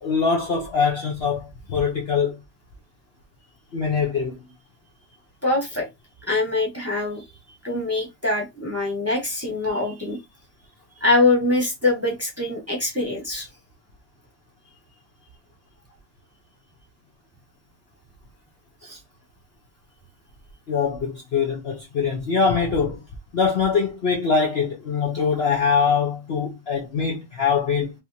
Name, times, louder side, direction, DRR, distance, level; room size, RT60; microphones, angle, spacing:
voice 1, 0.0-2.4 3.7-4.5 18.8-19.0 20.7-23.0 23.3-27.9, left 5 dB, 80° left, 0.5 m, -23 dB
voice 2, 5.4-5.9 6.3-7.2 7.6-10.2 11.0-13.5, left 2 dB, 10° right, 0.8 m, -23 dB
3.4 x 3.0 x 2.7 m
omnidirectional pair, 2.1 m